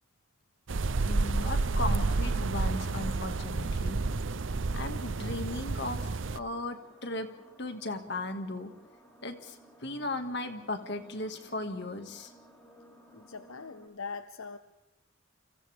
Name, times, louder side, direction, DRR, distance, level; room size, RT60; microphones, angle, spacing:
sound 1, 0.7-6.4, right 3 dB, 65° right, 0.7 m, -30 dB
sound 2, 0.9-13.9, right 1 dB, 10° left, 5.2 m, -58 dB
voice 1, 1.0-4.0 4.7-6.0 6.3-7.3 7.6-8.7 9.2-12.3, left 2 dB, 55° left, 6 dB, 2.1 m, -36 dB
voice 2, 13.1-14.6, left 4 dB, 80° left, 10 dB, 0.9 m, -41 dB
29.5 x 26.0 x 3.6 m, 0.92 s
head